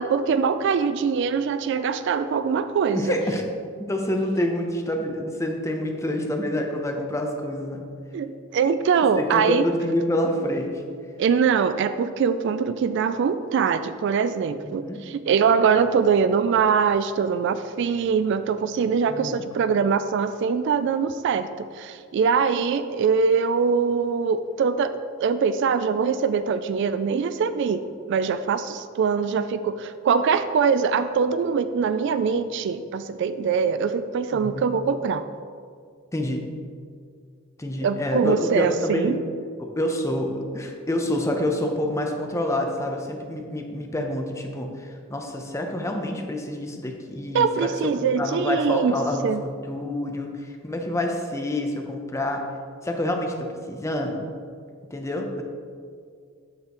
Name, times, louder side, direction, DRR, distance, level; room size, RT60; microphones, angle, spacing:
voice 1, 0.0-3.1 8.1-9.7 11.2-24.9 25.2-27.8 28.1-35.2 37.8-39.2 47.3-49.0 49.2-49.4, right 6 dB, 60° right, 12 dB, 0.3 m, -23 dB
voice 2, 2.9-3.4 3.9-7.8 9.2-10.8 14.6-15.0 19.1-19.4 34.3-34.7 36.1-36.5 37.6-39.1 39.6-47.7 48.0-52.4 52.8-54.2 54.9-55.4, left 1 dB, 15° left, 3 dB, 0.7 m, -27 dB
8.3 x 6.6 x 3.0 m, 2.2 s
head